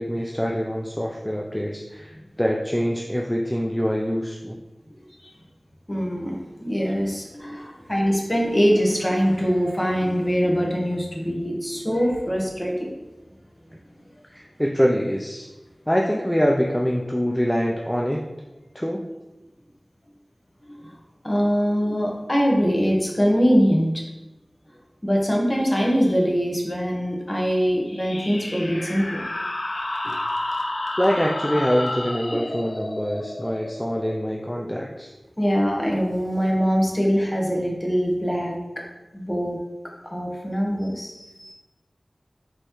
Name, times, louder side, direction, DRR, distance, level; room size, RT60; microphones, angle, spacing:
voice 1, 0.0-4.6 14.3-15.5 15.9-18.2 18.7-19.0 31.0-35.1, equal, 5° left, 0 dB, 0.4 m, -24 dB
voice 2, 5.9-12.9 20.7-20.9 21.2-24.0 25.0-29.2 35.4-38.8 39.1-39.6 40.0-41.5, equal, 25° left, -2 dB, 1.1 m, -23 dB
sound 1, 27.9-35.1, left 1 dB, 70° left, 0.6 m, -31 dB
5.5 x 3.1 x 3.0 m, 1.0 s
wide cardioid pair, 55°, 0 cm